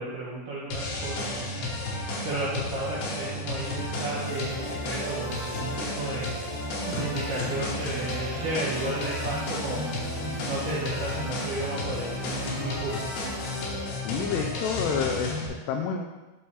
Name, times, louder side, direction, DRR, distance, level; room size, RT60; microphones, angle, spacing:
voice 1, 0.0-1.7 2.2-6.3 6.9-9.9 10.2-13.0, right 2 dB, 80° right, -6 dB, 1.9 m, -33 dB
sound 1, 0.7-15.5, left 2 dB, 65° left, 2.7 m, -33 dB
sound 2, 3.6-13.8, right 1 dB, 30° right, 2.8 m, -39 dB
voice 2, 14.0-16.0, left 6 dB, 85° left, 3 dB, 2.4 m, -29 dB
12.5 x 4.6 x 3.3 m, 1.1 s
omnidirectional pair, 5.4 m